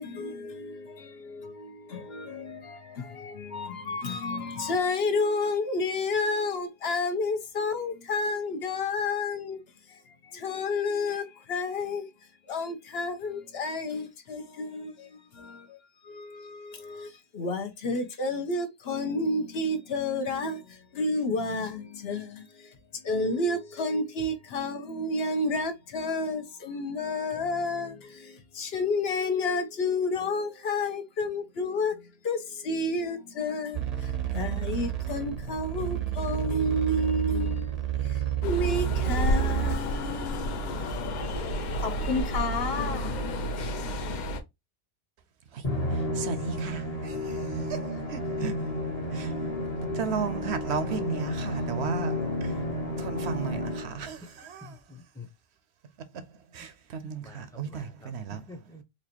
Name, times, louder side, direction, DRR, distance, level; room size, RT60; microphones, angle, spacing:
voice 1, 0.0-9.6 9.9-12.1 12.5-15.8 16.0-37.8 38.0-43.2, left 2 dB, 70° left, 1.0 m, -31 dB
sound 1, 33.7-39.8, right 11 dB, 45° right, 0.6 m, -30 dB
sound 2, 38.4-44.4, equal, 55° left, 0.6 m, -31 dB
Musical instrument, 45.6-54.1, left 1 dB, 35° left, 1.0 m, -31 dB
voice 2, 45.9-48.8 49.1-49.3 49.8-52.6 53.0-54.8 56.5-58.4, right 6 dB, 80° right, 0.9 m, -35 dB
voice 3, 54.6-55.3 56.6-56.7 57.0-58.8, left 2 dB, 5° left, 0.5 m, -48 dB
4.2 x 2.5 x 2.8 m
omnidirectional pair, 1.1 m